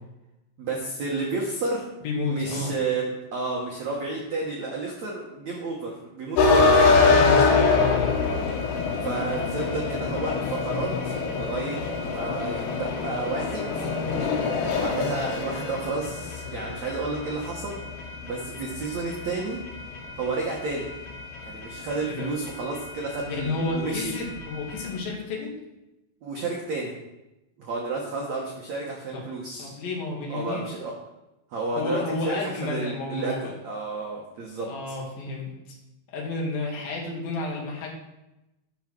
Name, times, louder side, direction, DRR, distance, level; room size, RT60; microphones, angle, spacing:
voice 1, 0.6-1.9 2.3-7.0 9.0-13.9 14.7-17.8 18.2-19.6 20.2-20.9 21.4-24.1 26.2-26.9 27.6-29.8 30.3-30.9 31.5-35.0, right 3 dB, 80° right, -2 dB, 1.6 m, -31 dB
voice 2, 2.0-2.7 7.1-8.1 22.1-22.3 23.3-25.5 29.1-29.2 29.6-30.6 31.7-33.5 34.7-35.8 36.1-38.1, left 3 dB, 55° left, -1 dB, 3.3 m, -31 dB
sound 1, 6.4-25.0, left 4 dB, 85° left, 3.8 m, -26 dB
11.5 x 5.4 x 6.1 m, 0.96 s
omnidirectional pair, 5.4 m